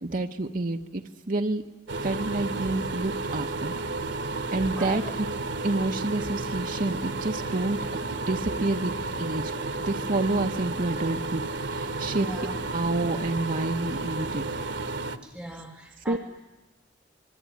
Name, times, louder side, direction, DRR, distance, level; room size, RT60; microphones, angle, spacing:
voice 1, 0.0-1.6 2.0-3.7 4.2-5.3 5.6-7.8 8.3-9.5 9.8-12.3 12.7-14.5 16.1-16.2, right 2 dB, 50° right, 4 dB, 0.9 m, -28 dB
sound 1, 1.9-15.2, right 3 dB, 80° right, 1.5 m, -32 dB
voice 2, 12.1-12.6 15.2-16.2, right 1 dB, 5° right, 1 dB, 1.8 m, -39 dB
26.5 x 22.0 x 9.4 m, 1.1 s
head